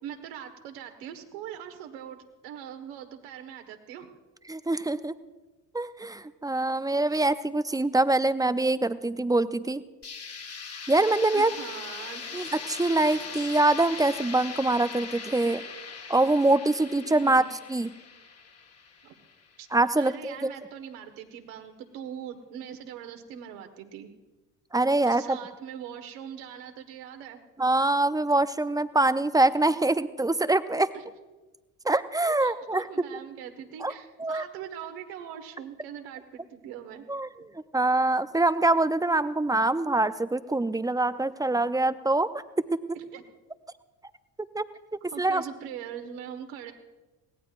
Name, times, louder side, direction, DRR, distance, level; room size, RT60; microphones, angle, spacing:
voice 1, 0.0-2.2 2.4-4.1 7.1-7.2 11.3-12.4 17.2-17.5 19.0-19.2 19.6-19.7 20.0-24.1 25.1-27.4 30.9-31.0 32.4-37.1 42.9-43.2 45.1-46.7, right 9 dB, 75° right, 6 dB, 1.8 m, -41 dB
voice 2, 4.5-5.1 5.7-9.8 10.9-11.5 12.3-15.6 16.1-17.4 17.7-17.9 19.7-20.5 24.7-25.4 27.6-30.9 31.8-33.2 33.8-33.9 34.2-34.4 37.1-42.8 44.5-44.6 45.2-45.4, right 2 dB, 10° right, 13 dB, 0.5 m, -24 dB
sound 1, 10.0-19.8, left 5 dB, 30° left, 1.6 m, -40 dB
21.5 x 17.5 x 2.6 m, 1.2 s
hypercardioid pair, 60°, 48 cm